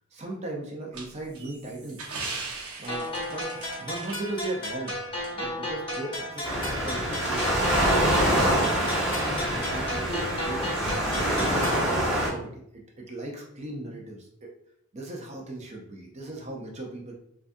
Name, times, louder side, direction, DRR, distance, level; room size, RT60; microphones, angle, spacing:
voice 1, 0.1-2.1 2.5-5.0 5.3-7.5 7.7-8.9 9.5-14.5 14.9-17.1, right 2 dB, 30° right, -1 dB, 0.5 m, -38 dB
sound 1, 0.9-4.9 5.2-5.3 5.9-6.0, right 4 dB, 90° right, 0.8 m, -39 dB
sound 2, 2.9-11.9, left 1 dB, 25° left, 0.7 m, -34 dB
Waves surf, 6.4-12.3, right 1 dB, ahead, 1.1 m, -25 dB
3.8 x 2.3 x 2.6 m, 0.76 s
head